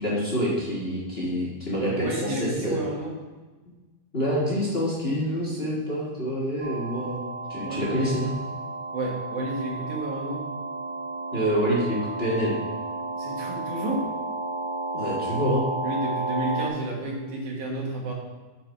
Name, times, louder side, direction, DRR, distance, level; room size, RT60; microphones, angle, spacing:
voice 1, 0.0-2.8 4.1-8.3 11.3-12.5 14.9-15.7, equal, 35° left, -5 dB, 1.0 m, -27 dB
voice 2, 1.8-3.1 7.6-8.1 8.9-10.4 13.2-14.0 15.8-18.1, right 2 dB, 85° right, -2 dB, 3.0 m, -31 dB
sound 1, 6.6-16.7, right 2 dB, 60° right, 0.5 m, -32 dB
9.0 x 4.6 x 4.5 m, 1.2 s
omnidirectional pair, 3.4 m